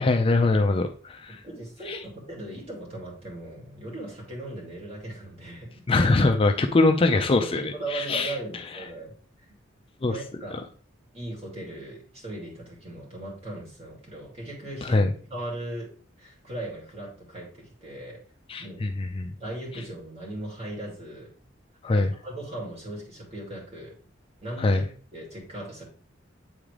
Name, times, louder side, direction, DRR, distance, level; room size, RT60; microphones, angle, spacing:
voice 1, 0.0-1.4 1.9-2.0 5.9-8.3 10.0-10.1 14.8-15.1 18.5-19.3 21.8-22.1 24.6-24.8, left 2 dB, 30° left, 6 dB, 0.4 m, -22 dB
voice 2, 1.3-5.8 7.1-9.1 9.4-9.6 10.0-10.7 11.1-15.0 15.3-15.9 16.2-18.2 18.6-18.9 19.4-21.3 21.9-23.9 24.4-24.8 25.1-25.8, right 1 dB, 35° right, -3 dB, 2.3 m, -38 dB
8.0 x 3.7 x 3.3 m, 0.42 s
head